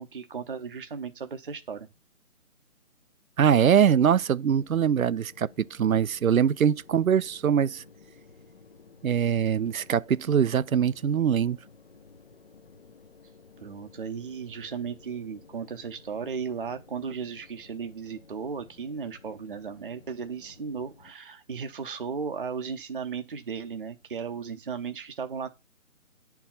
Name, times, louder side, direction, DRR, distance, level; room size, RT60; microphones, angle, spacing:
voice 1, 0.0-1.9 13.6-25.5, right 6 dB, 40° right, 0.8 m, -35 dB
voice 2, 3.4-7.8 9.0-11.6, right 8 dB, 75° right, 0.6 m, -23 dB
sound 1, 3.5-21.1, left 4 dB, 45° left, 1.0 m, -54 dB
9.7 x 4.6 x 5.6 m
figure-of-eight pair, 165°, 42 cm